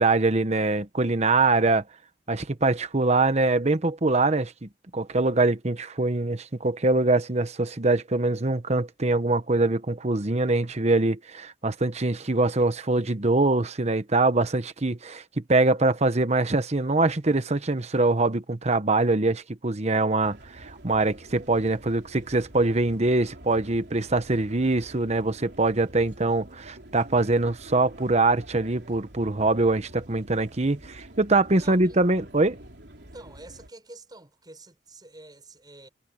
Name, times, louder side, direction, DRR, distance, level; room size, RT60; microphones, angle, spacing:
voice 1, 0.0-1.8 2.3-32.6, right 2 dB, 40° right, 1.1 m, -23 dB
sound 1, 20.2-33.7, right 1 dB, 70° right, 4.1 m, -47 dB
voice 2, 31.5-32.0 33.0-35.9, right 2 dB, 25° right, 7.3 m, -47 dB
head